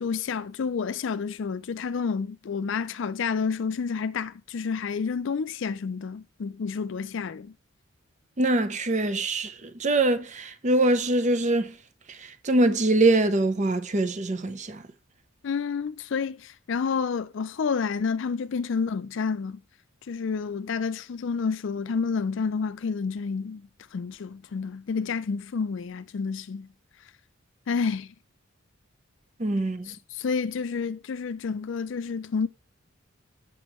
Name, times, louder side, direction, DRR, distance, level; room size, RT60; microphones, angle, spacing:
voice 1, 0.0-7.5 15.4-19.6 20.1-23.6 23.9-26.7 27.7-28.1 29.9-32.5, left 5 dB, 60° left, 0.4 m, -29 dB
voice 2, 8.4-11.7 12.1-14.8 29.4-29.9, right 2 dB, 35° right, 0.6 m, -24 dB
8.2 x 6.1 x 3.0 m
head